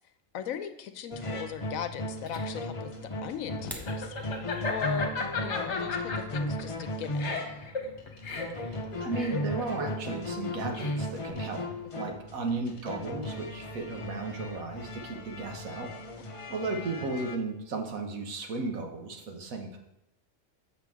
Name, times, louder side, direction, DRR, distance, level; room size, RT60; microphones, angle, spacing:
voice 1, 0.3-2.9 3.2-4.1 4.7-5.1 5.4-7.5 12.1-12.2, left 8 dB, 80° left, 10 dB, 1.1 m, -38 dB
sound 1, 1.1-17.4, left 1 dB, 35° left, 0.6 m, -36 dB
Laughter, 1.9-11.3, left 4 dB, 55° left, 1.3 m, -36 dB
sound 2, 3.4-4.0, left 1 dB, ahead, 0.8 m, -42 dB
voice 2, 8.5-15.9 16.5-19.8, right 3 dB, 85° right, 4 dB, 1.5 m, -35 dB
7.6 x 6.6 x 3.6 m, 0.89 s
omnidirectional pair, 1.4 m